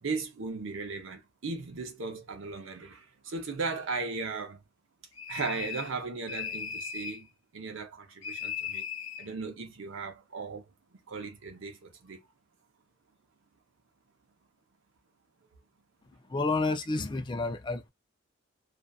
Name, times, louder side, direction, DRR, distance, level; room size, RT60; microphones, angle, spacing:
voice 1, 0.0-4.6 5.3-7.3 7.5-8.8 9.2-10.6 10.9-12.2, right 4 dB, 75° right, 0.7 m, -37 dB
sound 1, 5.1-6.0 6.3-7.2 8.2-9.3, left 7 dB, 70° left, 0.9 m, -37 dB
voice 2, 16.3-17.9, left 3 dB, 25° left, 0.4 m, -30 dB
2.4 x 2.4 x 2.3 m
head